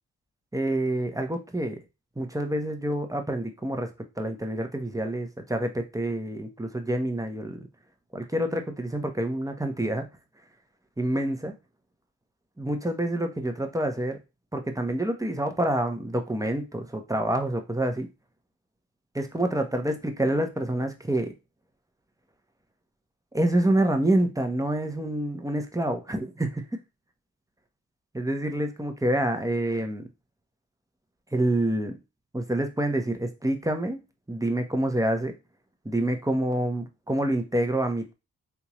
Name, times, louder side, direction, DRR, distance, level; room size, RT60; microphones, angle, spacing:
voice 1, 0.5-1.8 2.2-3.9 4.2-7.7 8.1-10.0 11.0-11.5 12.6-14.2 14.5-18.1 19.1-21.3 23.3-26.8 28.1-30.1 31.3-32.0 32.3-34.0 34.3-35.4 35.8-38.1, right 1 dB, 10° right, 5 dB, 1.0 m, -27 dB
3.5 x 2.8 x 3.0 m, 0.26 s
supercardioid pair, 40°, 38 cm